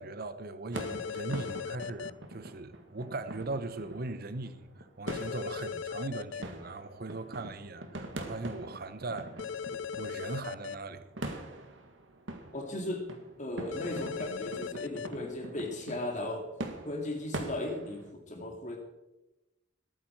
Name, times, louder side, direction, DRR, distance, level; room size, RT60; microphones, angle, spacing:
voice 1, 0.0-9.4 9.7-11.5, right 3 dB, 55° right, 0.8 m, -39 dB
sound 1, 0.7-2.1 5.1-6.4 9.4-10.7 13.7-15.1, left 6 dB, 90° left, 0.4 m, -38 dB
sound 2, 0.7-18.1, right 1 dB, 90° right, 1.9 m, -43 dB
voice 2, 12.5-13.0 13.4-16.4 16.8-18.8, left 1 dB, 40° left, 2.3 m, -36 dB
20.0 x 9.3 x 4.5 m
head